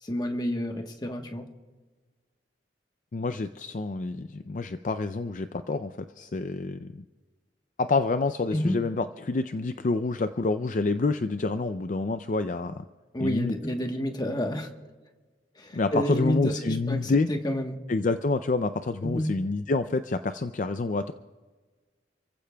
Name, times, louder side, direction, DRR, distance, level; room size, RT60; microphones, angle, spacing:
voice 1, 0.0-1.5 8.5-8.8 13.1-14.7 15.5-17.8 19.0-19.3, equal, 20° left, 4 dB, 1.2 m, -29 dB
voice 2, 3.1-7.0 7.8-12.8 13.2-13.6 15.7-17.3 17.9-21.1, left 3 dB, 45° left, 10 dB, 0.4 m, -28 dB
29.5 x 15.5 x 2.3 m, 1.4 s
head